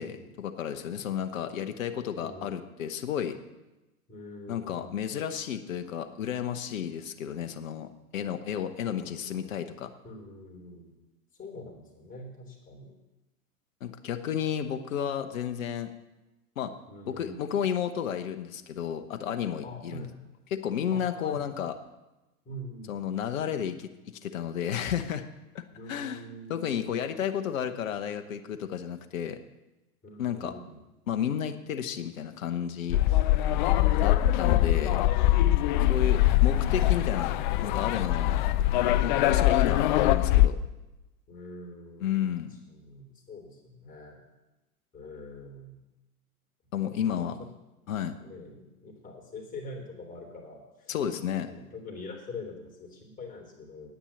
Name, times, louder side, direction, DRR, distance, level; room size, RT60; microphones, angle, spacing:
voice 1, 0.0-3.4 4.5-9.9 13.8-15.9 16.6-16.7 17.1-20.1 20.5-21.7 22.9-25.2 25.5-25.6 25.9-26.2 26.5-29.4 30.2-30.5 31.1-33.0 34.0-35.0 35.9-37.3 37.6-38.4 39.0-40.6 42.0-42.5 46.7-47.4 47.9-48.1 50.9-51.5, left 9 dB, 60° left, 7 dB, 1.0 m, -32 dB
voice 2, 2.2-2.6 4.1-4.9 8.8-9.4 10.0-10.9 11.4-12.9 16.9-17.4 19.6-20.1 20.9-21.4 22.4-23.0 25.7-27.2 30.0-30.8 41.3-44.2 44.9-45.8 48.2-50.9 51.4-53.9, left 2 dB, 20° left, 1 dB, 3.3 m, -44 dB
sound 1, 32.9-40.5, left 14 dB, 35° left, 0.4 m, -23 dB
9.9 x 9.1 x 7.2 m, 1.0 s
figure-of-eight pair, 95°, 44 cm